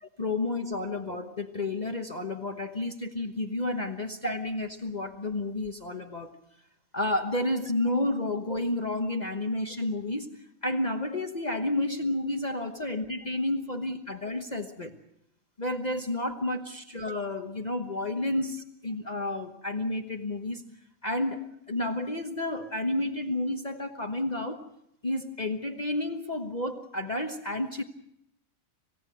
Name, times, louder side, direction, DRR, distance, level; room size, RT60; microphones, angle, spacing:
voice 1, 0.2-6.3 6.9-14.9 15.6-18.6 18.8-20.6 21.0-24.6 25.0-27.8, left 2 dB, 30° left, 5 dB, 1.3 m, -31 dB
27.0 x 17.0 x 7.8 m, 0.77 s
omnidirectional pair, 1.4 m